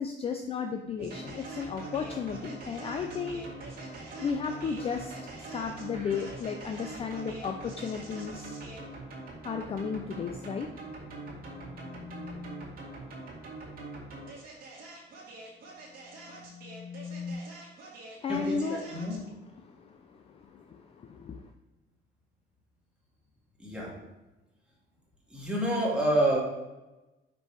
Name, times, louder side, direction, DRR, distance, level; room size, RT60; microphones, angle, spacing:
voice 1, 0.0-3.4 3.7-8.5 9.4-10.7 18.2-18.8 19.6-21.5, left 6 dB, 30° left, 5 dB, 0.4 m, -34 dB
sound 1, 1.0-19.3, right 2 dB, 50° right, 2.1 m, -43 dB
sound 2, 10.7-12.7 15.7-17.3, left 5 dB, 30° right, 1.9 m, -45 dB
voice 2, 18.3-19.3 23.6-24.0 25.3-26.4, right 1 dB, 5° right, -5 dB, 1.8 m, -28 dB
5.4 x 5.4 x 4.6 m, 1.1 s
cardioid pair, 165°, 20 cm